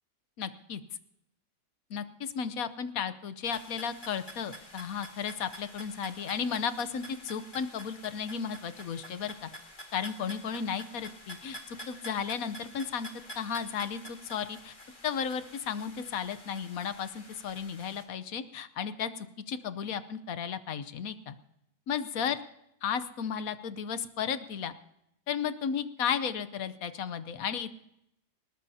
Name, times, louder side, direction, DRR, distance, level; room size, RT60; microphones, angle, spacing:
voice 1, 0.4-0.8 1.9-9.5 9.9-13.1 13.4-14.7 15.0-21.3 21.9-22.4 22.8-24.7 25.3-27.7, left 7 dB, 65° left, 13 dB, 1.2 m, -34 dB
sound 1, 3.4-18.0, equal, 30° left, 2.1 m, -48 dB
19.5 x 19.5 x 2.8 m, 0.79 s
omnidirectional pair, 1.7 m